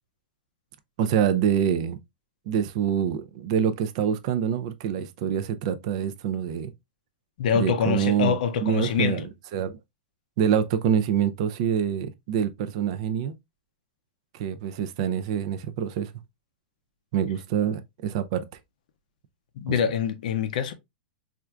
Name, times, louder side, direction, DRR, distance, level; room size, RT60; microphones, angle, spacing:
voice 1, 1.0-2.0 2.5-6.7 7.5-8.3 8.6-9.2 9.5-9.8 10.4-13.4 14.3-16.1 17.1-18.5 19.7-19.8, right 8 dB, 35° right, 0.3 m, -26 dB
voice 2, 7.4-9.3 19.6-20.7, left 7 dB, 50° left, 0.5 m, -25 dB
4.3 x 2.4 x 2.2 m
supercardioid pair, 175°, 5 cm